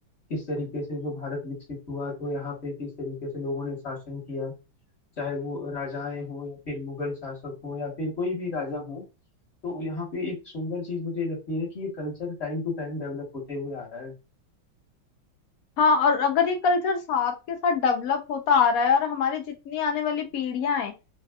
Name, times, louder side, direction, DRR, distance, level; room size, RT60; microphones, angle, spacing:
voice 1, 0.3-4.5 5.2-9.0 9.6-14.1, left 3 dB, 35° left, -4 dB, 1.3 m, -32 dB
voice 2, 15.8-20.9, left 5 dB, 75° left, 5 dB, 0.8 m, -23 dB
3.3 x 2.5 x 2.2 m, 0.28 s
omnidirectional pair, 2.3 m